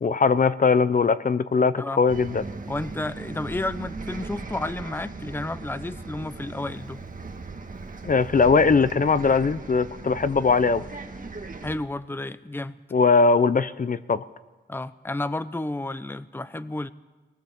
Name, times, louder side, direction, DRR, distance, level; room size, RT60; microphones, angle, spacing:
voice 1, 0.0-2.4 8.0-10.8 12.9-14.2, left 4 dB, 45° left, 14 dB, 0.7 m, -20 dB
Bus, 2.1-11.8, right 3 dB, 45° right, 2.0 m, -38 dB
voice 2, 2.7-7.0 11.6-12.7 14.7-16.9, left 2 dB, 10° left, 14 dB, 0.7 m, -31 dB
24.0 x 19.5 x 7.2 m, 1.2 s
wide cardioid pair, 105°, 19 cm